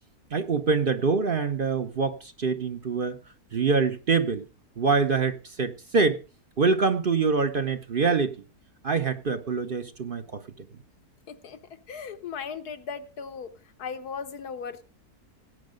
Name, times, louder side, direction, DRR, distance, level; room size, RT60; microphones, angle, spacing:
voice 1, 0.3-3.2 3.5-4.4 4.8-6.2 6.6-8.4 8.8-10.4, right 4 dB, 45° right, 0.9 m, -25 dB
voice 2, 11.3-11.6 11.9-13.5 13.8-14.8, left 6 dB, 85° left, 1.6 m, -37 dB
17.5 x 8.6 x 5.1 m
omnidirectional pair, 1.6 m